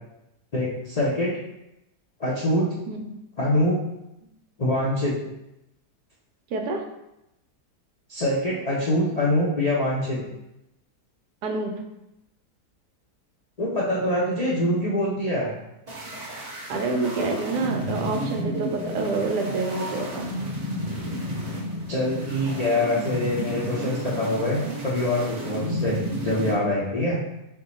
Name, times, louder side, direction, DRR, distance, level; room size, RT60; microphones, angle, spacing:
voice 1, 0.5-1.3 2.2-2.7 3.4-3.8 4.6-5.2 8.1-10.2 13.6-15.5 21.9-27.2, left 1 dB, 80° left, -6 dB, 0.3 m, -24 dB
voice 2, 2.9-3.2 6.5-6.8 11.4-11.8 16.7-20.3, right 3 dB, 80° right, 2 dB, 1.3 m, -27 dB
sound 1, 15.9-26.5, equal, 30° right, 0.8 m, -32 dB
4.6 x 2.2 x 4.0 m, 0.87 s
omnidirectional pair, 1.8 m